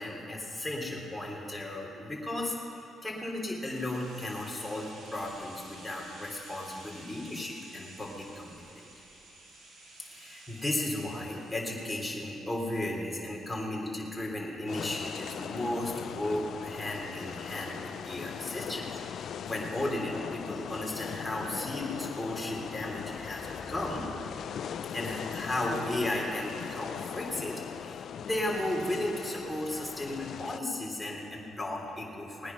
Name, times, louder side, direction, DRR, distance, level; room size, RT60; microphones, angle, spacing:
voice 1, 0.0-8.9 10.1-24.3 24.9-32.5, left 1 dB, 10° left, -2 dB, 3.4 m, -35 dB
sound 1, 3.7-13.6 13.9-14.0, right 2 dB, 65° right, 3.3 m, -53 dB
sound 2, 14.7-30.6, left 8 dB, 65° left, 0.3 m, -40 dB
19.5 x 9.6 x 6.0 m, 2.9 s
cardioid pair, 90°, 0 cm